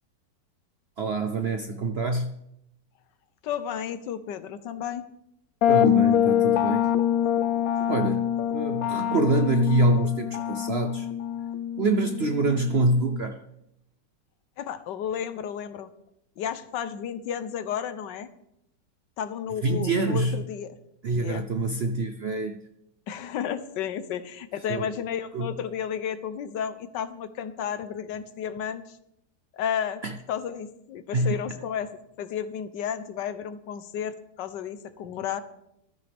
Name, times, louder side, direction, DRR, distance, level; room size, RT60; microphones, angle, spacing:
voice 1, 1.0-2.3 5.7-6.8 7.9-11.1 11.8-13.4 19.6-20.4 21.0-22.6 24.7-24.9 25.3-25.5 30.0-30.1 31.1-31.4, right 2 dB, 60° right, 7 dB, 0.6 m, -25 dB
voice 2, 3.4-5.1 14.6-15.9 16.4-18.3 19.2-20.8 21.2-21.4 23.1-29.0 29.5-30.0 30.3-31.9 32.2-35.4, left 8 dB, 85° left, 12 dB, 1.5 m, -32 dB
sound 1, 5.6-13.2, left 10 dB, 70° left, 1.0 m, -25 dB
14.5 x 12.5 x 3.4 m, 0.80 s
omnidirectional pair, 1.9 m